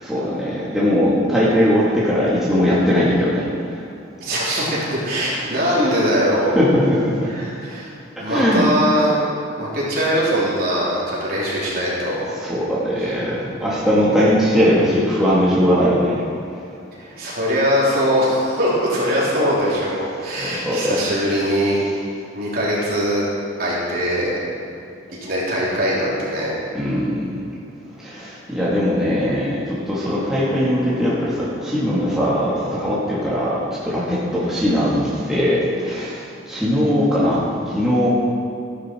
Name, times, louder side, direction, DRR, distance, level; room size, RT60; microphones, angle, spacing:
voice 1, 0.0-3.5 5.3-5.6 6.5-7.3 8.3-8.7 12.4-16.2 20.3-21.0 26.7-27.3 28.0-38.1, equal, 5° right, -9 dB, 2.6 m, -20 dB
voice 2, 4.2-6.6 7.3-7.9 8.2-9.2 9.6-12.3 13.0-13.1 17.0-21.8 22.3-23.3 23.6-24.4 25.2-26.5, equal, 50° right, -7 dB, 3.7 m, -21 dB
14.0 x 11.0 x 4.7 m, 2.5 s
head